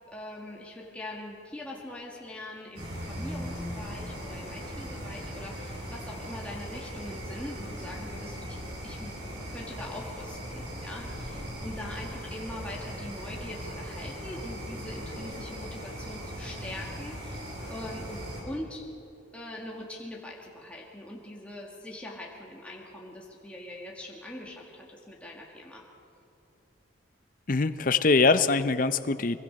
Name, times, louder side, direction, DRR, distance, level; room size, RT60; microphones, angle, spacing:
voice 1, 0.1-8.6 8.8-18.9 19.3-25.8, left 1 dB, 5° left, -3 dB, 2.0 m, -42 dB
sound 1, 2.8-18.4, equal, 60° right, 5.0 m, -39 dB
voice 2, 27.5-29.4, left 4 dB, 45° left, 13 dB, 0.6 m, -23 dB
24.5 x 23.0 x 5.3 m, 2.7 s
head